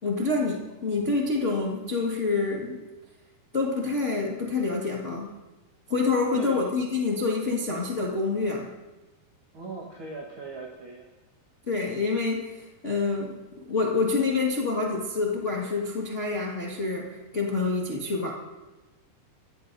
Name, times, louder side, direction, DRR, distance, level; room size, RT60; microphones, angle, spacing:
voice 1, 0.0-2.8 3.5-5.3 5.9-8.7 11.7-13.3 13.7-18.3, left 3 dB, 60° left, -3 dB, 0.7 m, -27 dB
voice 2, 6.3-6.8 9.5-11.1, right 3 dB, 65° right, -1 dB, 1.2 m, -39 dB
24.0 x 15.5 x 2.7 m, 1.1 s
omnidirectional pair, 4.7 m